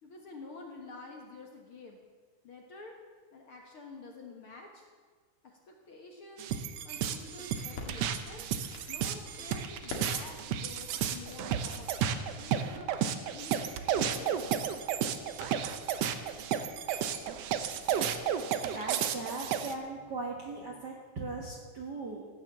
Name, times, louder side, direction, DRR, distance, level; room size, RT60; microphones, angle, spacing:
voice 1, 0.0-2.0 2.4-3.0 3.3-4.9 5.4-6.5 6.8-8.5 8.9-12.9 13.3-14.7, left 3 dB, 50° left, 1 dB, 1.9 m, -49 dB
sound 1, 6.4-19.7, right 9 dB, 75° right, 1.5 m, -32 dB
sound 2, 7.0-18.3, left 3 dB, 90° left, 3.6 m, -50 dB
voice 2, 18.6-22.2, right 3 dB, 45° right, -1 dB, 1.4 m, -39 dB
15.0 x 9.6 x 7.4 m, 1.5 s
omnidirectional pair, 3.8 m